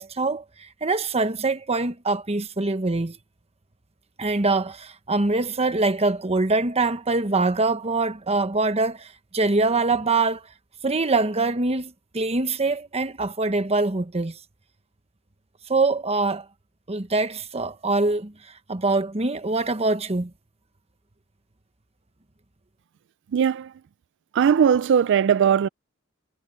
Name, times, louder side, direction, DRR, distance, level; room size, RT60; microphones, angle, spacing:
voice 1, 0.0-3.2 4.2-10.4 10.8-14.4 15.7-16.4 16.9-18.3 18.7-20.3, right 3 dB, 30° right, 1.1 m, -24 dB
voice 2, 23.3-23.7 24.3-25.7, right 7 dB, 60° right, 0.3 m, -19 dB
head